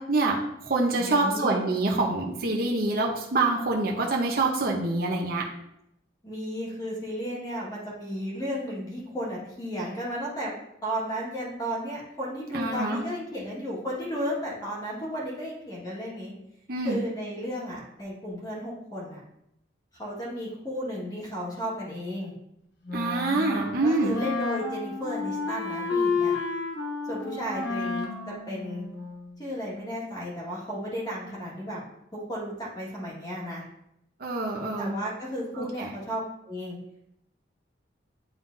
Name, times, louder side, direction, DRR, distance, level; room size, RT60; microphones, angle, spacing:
voice 1, 0.0-5.5 12.5-13.0 16.7-17.0 22.9-24.2 34.2-34.9 35.6-35.9, right 2 dB, 50° right, -1 dB, 0.8 m, -26 dB
voice 2, 1.0-1.6 6.2-10.5 10.8-16.3 16.8-19.2 19.9-22.3 23.8-26.4 27.1-28.9 29.4-31.8 32.1-33.6 34.8-36.8, equal, 20° left, -6 dB, 1.7 m, -34 dB
Wind instrument woodwind instrument, 22.9-29.5, left 4 dB, 65° left, 0.9 m, -31 dB
9.5 x 3.7 x 2.7 m, 0.79 s
head